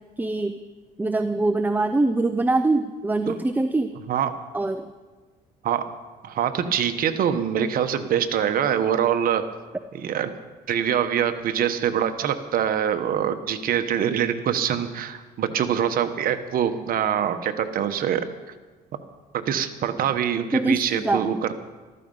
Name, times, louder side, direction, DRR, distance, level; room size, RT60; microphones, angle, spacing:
voice 1, 0.2-0.6 1.0-3.9 4.5-4.9 20.5-21.4, right 2 dB, 10° right, 9 dB, 0.6 m, -23 dB
voice 2, 6.2-9.4 10.0-10.3 10.7-18.3 19.5-21.6, right 9 dB, 60° right, 8 dB, 1.2 m, -24 dB
14.0 x 13.5 x 5.5 m, 1.3 s
cardioid pair, 110°, 17 cm